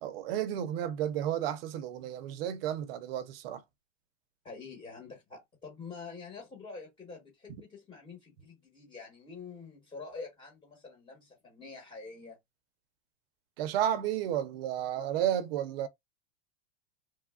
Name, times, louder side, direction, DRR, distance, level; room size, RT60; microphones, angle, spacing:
voice 1, 0.0-3.6 13.6-15.9, right 11 dB, 50° right, 0.7 m, -32 dB
voice 2, 4.4-12.4, left 4 dB, 10° left, 1.2 m, -46 dB
3.2 x 2.3 x 2.3 m
supercardioid pair, 150°, 37 cm